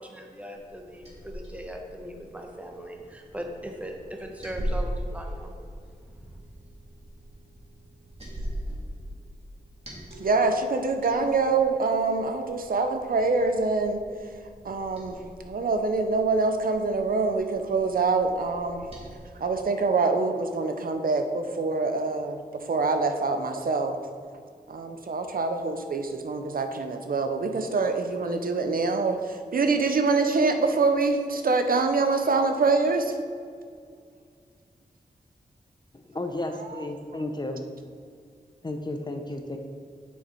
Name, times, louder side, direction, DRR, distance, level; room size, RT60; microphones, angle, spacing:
voice 1, 0.0-5.6 6.0-6.2, equal, 10° right, 2 dB, 1.0 m, -39 dB
Liquid, 0.6-19.2, equal, 40° right, 2.1 m, -40 dB
voice 2, 10.2-18.9 19.3-24.0 24.7-33.2 36.6-36.8, right 3 dB, 65° right, 6 dB, 0.6 m, -25 dB
voice 3, 35.9-37.7 38.6-39.6, left 2 dB, 25° left, 5 dB, 0.6 m, -33 dB
6.6 x 6.4 x 4.4 m, 2.2 s
wide cardioid pair, 90°, 16 cm